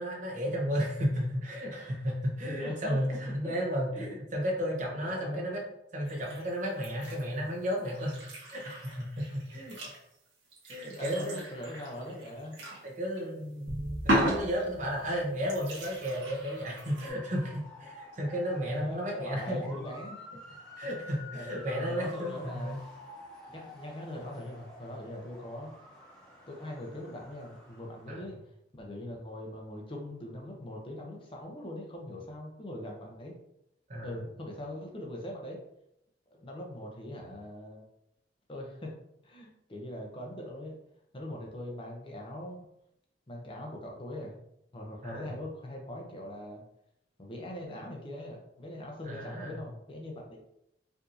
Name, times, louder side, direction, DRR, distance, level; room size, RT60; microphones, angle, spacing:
voice 1, 0.0-5.6 5.9-8.2 8.5-9.7 10.7-11.4 12.8-19.7 20.8-22.8 28.1-28.3 33.9-34.2 45.0-45.3 49.0-49.6, equal, 45° right, -2 dB, 0.9 m, -33 dB
voice 2, 2.5-3.0 3.4-3.5 3.9-4.1 4.9-5.4 10.8-12.6 18.5-20.2 21.3-22.8 23.5-25.7 26.5-33.3 34.0-35.6 36.4-37.8 38.5-38.9 39.2-40.8 41.1-42.7 43.3-44.4 44.7-46.6 47.2-50.4, left 1 dB, 30° left, 0 dB, 0.6 m, -41 dB
sound 1, 6.0-7.3 7.6-12.9 13.1-13.2 14.1-15.0 15.4-17.1, equal, 65° right, 1.2 m, -36 dB
sound 2, 13.7-16.2, right 1 dB, 70° left, 1.1 m, -43 dB
Motor vehicle (road) / Siren, 15.6-28.3, left 1 dB, 5° left, 1.0 m, -50 dB
4.6 x 2.7 x 2.6 m, 0.80 s
head